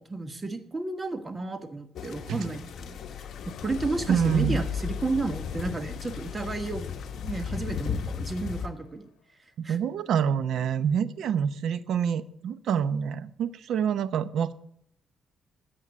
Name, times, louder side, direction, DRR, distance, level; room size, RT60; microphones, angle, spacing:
voice 1, 0.0-3.0 3.4-6.9 7.2-9.1 9.6-9.8, right 3 dB, 25° right, 8 dB, 1.4 m, -32 dB
sound 1, 2.0-8.7, left 6 dB, 65° left, 1.1 m, -37 dB
sound 2, 2.7-8.6, left 7 dB, 80° left, 1.1 m, -38 dB
voice 2, 4.1-4.6 9.7-14.5, right 8 dB, 75° right, 14 dB, 0.8 m, -27 dB
13.5 x 8.2 x 8.2 m, 0.70 s
cardioid pair, 130°, 0 cm